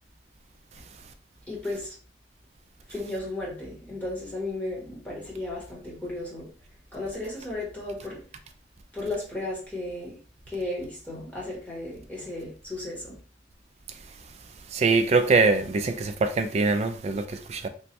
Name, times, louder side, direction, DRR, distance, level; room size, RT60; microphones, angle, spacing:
voice 1, 1.5-2.0 2.9-6.5 6.9-8.2 8.9-10.2 10.5-13.2, left 2 dB, 10° left, 1.0 m, -34 dB
voice 2, 14.7-17.7, right 3 dB, 35° right, 0.3 m, -23 dB
3.1 x 2.2 x 2.8 m
head